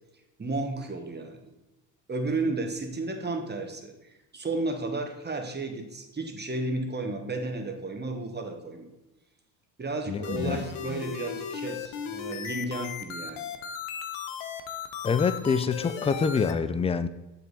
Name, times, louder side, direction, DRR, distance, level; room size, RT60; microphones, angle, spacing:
voice 1, 0.4-1.4 2.1-8.9 9.8-13.5, right 2 dB, 20° right, 4 dB, 1.4 m, -33 dB
voice 2, 10.1-10.6 15.0-17.1, left 5 dB, 15° left, 12 dB, 0.3 m, -26 dB
sound 1, 10.2-16.5, left 7 dB, 75° left, 0.9 m, -36 dB
7.6 x 5.2 x 4.1 m, 0.98 s
hypercardioid pair, 65°, 49 cm